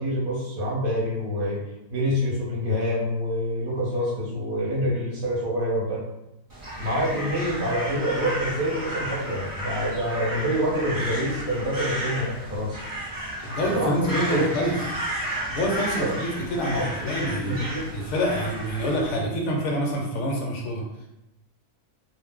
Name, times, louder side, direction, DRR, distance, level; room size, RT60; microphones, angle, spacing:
voice 1, 0.0-1.6 1.9-6.0 6.8-12.8 13.7-14.5 16.0-16.1 16.7-17.9, equal, 45° right, -5 dB, 0.9 m, -27 dB
Crow, 6.5-19.2, right 1 dB, 20° right, 0.5 m, -33 dB
voice 2, 13.4-14.7 15.5-17.5 17.9-20.8, equal, 60° left, -1 dB, 1.0 m, -26 dB
2.5 x 2.0 x 3.6 m, 0.89 s
omnidirectional pair, 1.5 m